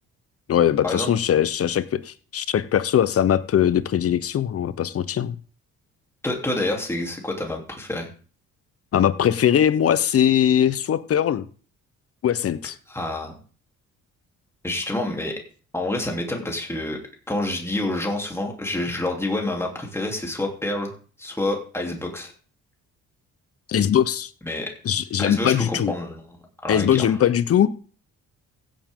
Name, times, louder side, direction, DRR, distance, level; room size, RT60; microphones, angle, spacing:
voice 1, 0.5-5.4 8.9-11.5 12.2-12.7 23.7-24.3 24.8-25.9 26.7-27.7, left 9 dB, 50° left, 15 dB, 0.8 m, -21 dB
voice 2, 6.2-8.1 12.9-13.4 14.6-15.3 15.7-17.0 17.3-20.9 21.2-22.3 24.4-24.7 25.2-26.2 26.6-27.0, left 1 dB, 10° left, 0 dB, 3.2 m, -27 dB
16.0 x 7.4 x 3.7 m, 0.40 s
cardioid pair, 90°, 30 cm